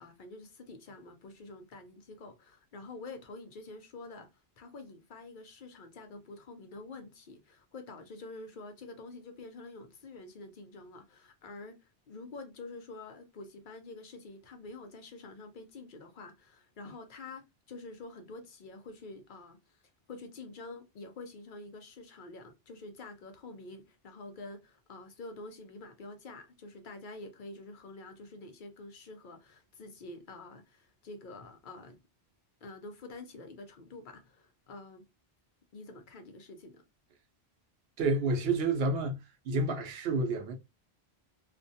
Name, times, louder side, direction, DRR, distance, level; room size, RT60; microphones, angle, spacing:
voice 1, 0.0-4.3 4.6-19.8 20.1-32.0 32.6-35.1 35.7-36.8, left 2 dB, 55° left, 0.7 m, -47 dB
voice 2, 38.0-39.2 39.4-40.5, right 3 dB, 70° right, 0.8 m, -29 dB
2.4 x 2.2 x 2.6 m
omnidirectional pair, 1.1 m